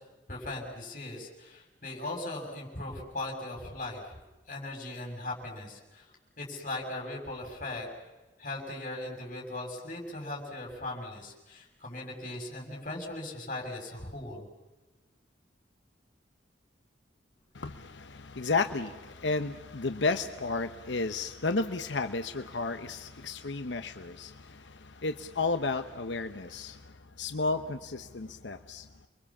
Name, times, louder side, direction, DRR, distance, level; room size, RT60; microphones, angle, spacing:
voice 1, 0.3-6.1 6.4-7.9 8.4-14.4, left 2 dB, 45° left, 0 dB, 6.8 m, -39 dB
voice 2, 17.5-28.9, left 3 dB, 80° left, 8 dB, 1.0 m, -33 dB
29.5 x 23.0 x 7.3 m, 1.1 s
head